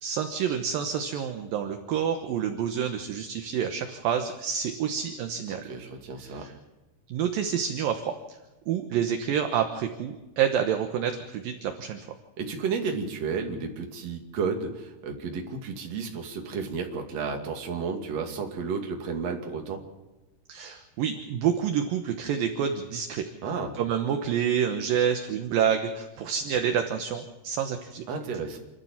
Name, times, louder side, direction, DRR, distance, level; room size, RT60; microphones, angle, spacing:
voice 1, 0.0-5.6 6.2-6.5 7.1-8.4 8.7-12.0 20.5-23.3 23.7-28.0, right 8 dB, 70° right, 6 dB, 2.7 m, -28 dB
voice 2, 5.7-6.4 12.4-19.8 23.4-23.7 28.1-28.6, right 5 dB, 45° right, 3 dB, 3.2 m, -32 dB
28.5 x 12.5 x 7.4 m, 1.1 s
omnidirectional pair, 4.6 m